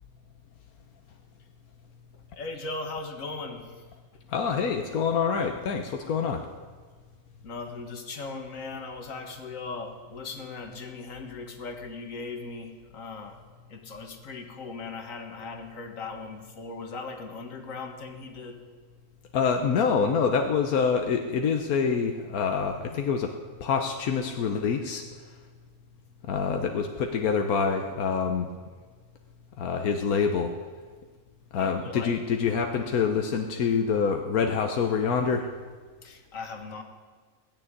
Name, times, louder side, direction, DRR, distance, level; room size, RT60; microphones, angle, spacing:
voice 1, 2.1-3.8 7.4-13.4 13.7-18.6 31.5-32.2 36.0-36.8, left 3 dB, 65° left, 4 dB, 1.9 m, -38 dB
voice 2, 4.3-6.5 19.3-23.3 23.6-25.1 26.3-28.5 29.6-30.5 31.5-35.6, left 6 dB, 90° left, 4 dB, 1.4 m, -26 dB
17.5 x 7.1 x 9.8 m, 1.5 s
omnidirectional pair, 1.5 m